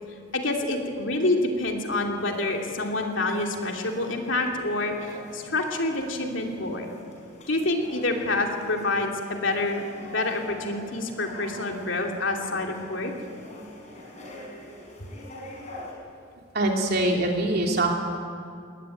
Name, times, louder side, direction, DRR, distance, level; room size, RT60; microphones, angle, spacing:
voice 1, 0.3-6.9 7.5-13.1, left 2 dB, 70° left, 2 dB, 2.8 m, -27 dB
sound 1, 2.2-15.9, left 1 dB, 35° left, 5.5 m, -45 dB
voice 2, 16.5-17.9, right 1 dB, 50° right, 1 dB, 3.3 m, -23 dB
21.0 x 19.0 x 9.2 m, 2.4 s
head